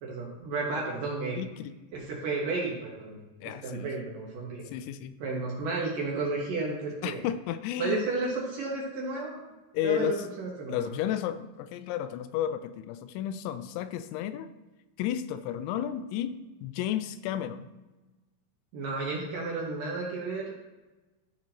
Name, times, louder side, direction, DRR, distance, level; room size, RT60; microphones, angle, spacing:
voice 1, 0.0-1.4 1.9-3.2 3.6-4.6 5.2-7.2 7.8-9.4 9.8-10.8 18.7-20.6, right 3 dB, 65° right, -3 dB, 2.4 m, -32 dB
voice 2, 1.4-1.8 3.4-3.9 4.7-5.2 7.0-8.1 9.7-10.2 10.7-14.5 15.0-17.7, left 10 dB, 90° left, 12 dB, 2.9 m, -32 dB
14.0 x 6.0 x 2.9 m, 1.1 s
omnidirectional pair, 5.2 m